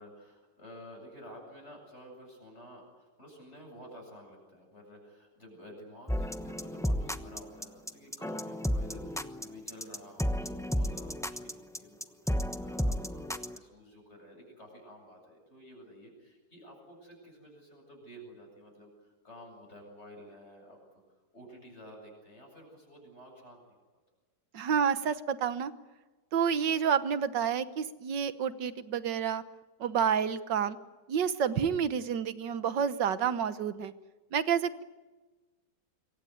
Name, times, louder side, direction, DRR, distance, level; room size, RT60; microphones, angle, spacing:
voice 1, 0.0-21.0 21.3-23.8, equal, 35° left, 0 dB, 8.5 m, -51 dB
sound 1, 6.1-13.6, equal, 5° left, 0.7 m, -32 dB
voice 2, 24.5-25.7 26.3-29.4 29.8-30.8 31.1-33.9 34.3-34.8, right 7 dB, 80° right, 12 dB, 1.8 m, -29 dB
26.5 x 24.0 x 9.4 m, 1.2 s
omnidirectional pair, 1.9 m